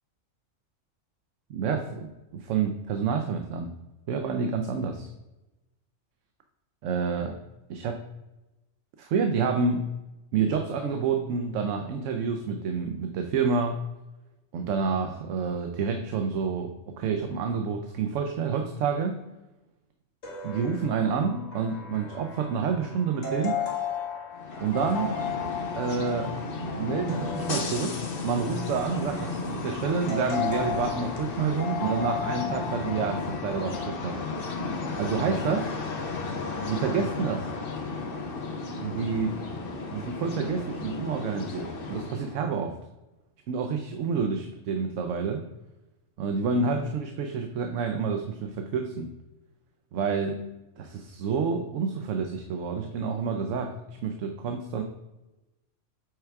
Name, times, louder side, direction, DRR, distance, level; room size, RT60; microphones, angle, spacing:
voice 1, 1.5-3.7 4.1-5.1 6.8-7.4 7.7-8.0 9.0-9.9 10.3-13.8 14.5-19.2 20.4-23.6 24.6-25.2 25.7-26.3 26.8-34.1 35.0-35.7 36.7-37.5 38.8-39.4 39.9-42.7 43.5-45.4 46.2-49.1 49.9-50.5 50.8-54.8, right 5 dB, 75° right, 5 dB, 1.0 m, -28 dB
sound 1, 20.2-33.9, left 6 dB, 75° left, 1.8 m, -35 dB
sound 2, 24.3-42.4, left 3 dB, 50° left, 1.0 m, -34 dB
7.9 x 4.6 x 3.4 m, 1.0 s
omnidirectional pair, 1.3 m